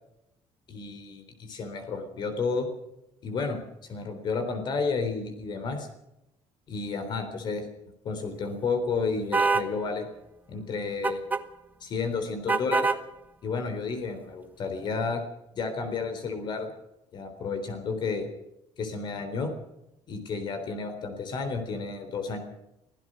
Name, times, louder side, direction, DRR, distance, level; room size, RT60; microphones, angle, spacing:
voice 1, 0.7-2.7 3.2-3.6 3.9-5.9 6.7-7.6 8.0-10.1 10.5-11.2 11.8-12.9 13.4-15.2 15.5-16.7 17.1-18.3 18.8-19.5 20.1-22.4, left 4 dB, 45° left, 7 dB, 3.8 m, -31 dB
sound 1, 9.3-9.7 11.0-11.4 12.5-13.0, right 4 dB, 15° right, 1.0 m, -24 dB
24.5 x 16.5 x 6.4 m, 0.85 s
cardioid pair, 165°, 11 cm